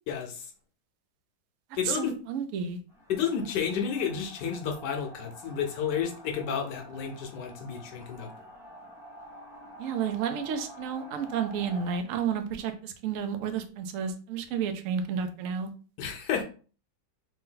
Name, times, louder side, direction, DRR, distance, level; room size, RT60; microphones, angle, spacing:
voice 1, 0.1-0.5 1.8-2.2 3.1-8.3 16.0-16.4, left 7 dB, 70° left, 3 dB, 1.2 m, -31 dB
voice 2, 1.8-2.8 9.8-15.7, right 7 dB, 75° right, 7 dB, 0.7 m, -31 dB
sound 1, 2.9-12.0, right 1 dB, 5° right, 0.4 m, -48 dB
3.3 x 2.7 x 3.7 m, 0.39 s
omnidirectional pair, 2.0 m